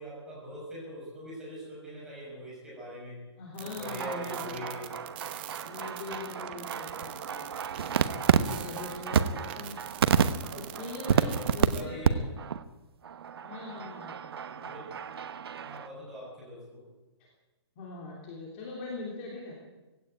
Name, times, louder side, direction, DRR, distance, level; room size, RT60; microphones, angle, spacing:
voice 1, 0.0-3.2 3.6-5.0 11.7-12.2 14.5-14.9 15.6-16.9, equal, 5° right, -6 dB, 6.2 m, -42 dB
voice 2, 3.4-4.6 5.6-7.5 8.1-9.8 10.5-12.2 13.4-14.3 14.6-14.7 17.8-19.6, left 3 dB, 20° left, -2 dB, 3.0 m, -41 dB
sound 1, 3.6-11.8, right 13 dB, 20° right, 0.9 m, -44 dB
sound 2, 3.8-11.7 12.0-12.1 12.4-12.6 13.0-15.9, right 7 dB, 60° right, 1.1 m, -30 dB
18.0 x 16.5 x 9.1 m, 1.1 s
hypercardioid pair, 180°, 14 cm